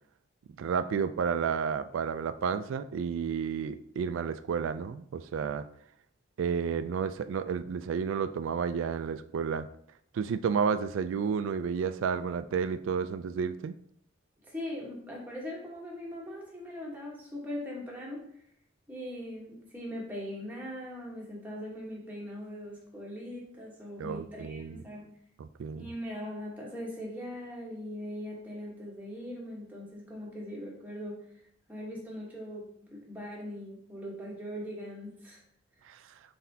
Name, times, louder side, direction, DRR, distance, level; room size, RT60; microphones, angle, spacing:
voice 1, 0.6-5.6 6.4-9.7 10.1-13.7 24.0-24.8 25.4-25.9 35.9-36.0, right 6 dB, 80° right, 12 dB, 0.3 m, -31 dB
voice 2, 14.5-18.3 18.9-25.1 25.7-31.2 31.7-35.4, left 1 dB, 10° right, -4 dB, 1.2 m, -40 dB
4.2 x 4.0 x 2.8 m, 0.67 s
head